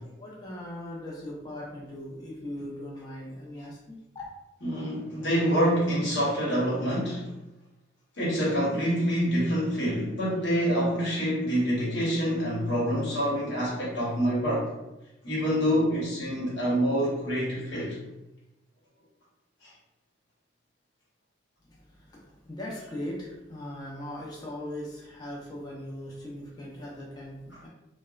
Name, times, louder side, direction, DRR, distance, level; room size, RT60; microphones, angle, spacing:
voice 1, 0.0-4.3 21.7-27.7, left 1 dB, 20° left, -3 dB, 0.5 m, -39 dB
voice 2, 4.6-7.2 8.2-14.7 15.2-18.0 19.6-19.7 27.5-27.6, equal, 70° left, -6 dB, 1.0 m, -26 dB
2.8 x 2.1 x 2.3 m, 0.96 s
head